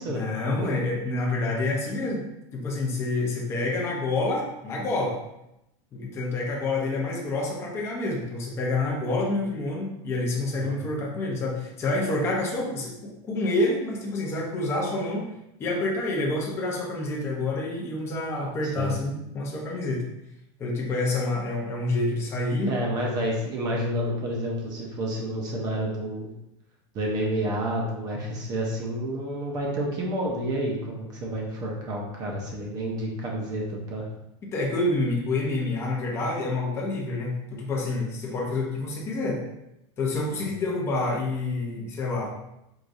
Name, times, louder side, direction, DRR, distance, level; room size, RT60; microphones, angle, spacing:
voice 1, 0.1-2.2 2.5-5.2 5.9-15.3 15.6-20.0 20.6-22.7 34.5-39.4 40.0-42.3, left 2 dB, 15° left, -2 dB, 0.7 m, -28 dB
voice 2, 10.6-11.0 18.8-19.0 22.7-26.3 26.9-34.1 40.4-40.6, right 1 dB, 25° right, -1 dB, 0.7 m, -29 dB
4.7 x 2.6 x 2.6 m, 0.85 s
supercardioid pair, 170°, 15 cm